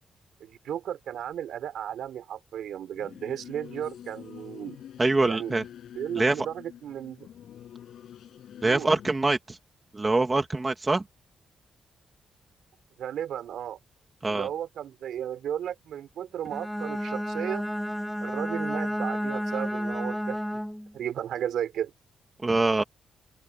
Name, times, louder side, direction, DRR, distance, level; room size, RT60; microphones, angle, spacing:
voice 1, 0.4-4.8 5.2-5.5 5.9-7.3 8.6-8.9 13.0-13.8 14.3-17.7 18.2-20.4 20.9-21.9, right 10 dB, 70° right, 4.3 m, -34 dB
Singing / Musical instrument, 2.9-9.1, left 10 dB, 65° left, 7.8 m, -46 dB
voice 2, 5.0-5.6 6.1-6.4 8.6-9.6 9.9-11.0 14.2-14.5 22.4-22.8, right 2 dB, 15° right, 2.3 m, -24 dB
Bowed string instrument, 16.4-20.9, equal, ahead, 1.9 m, -31 dB
open air
wide cardioid pair, 175°, 0 cm